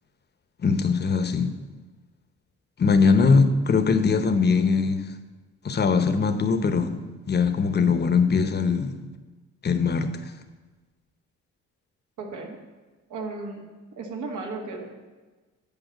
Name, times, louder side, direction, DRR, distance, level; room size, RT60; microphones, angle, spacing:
voice 1, 0.6-1.5 2.8-5.1 5.6-7.0 7.3-9.0 9.6-10.2, left 5 dB, 35° left, 0.9 m, -21 dB
voice 2, 12.2-12.6 13.1-13.6 14.0-15.1, right 3 dB, 80° right, 1.9 m, -35 dB
9.0 x 5.5 x 7.9 m
cardioid pair, 90°, 30 cm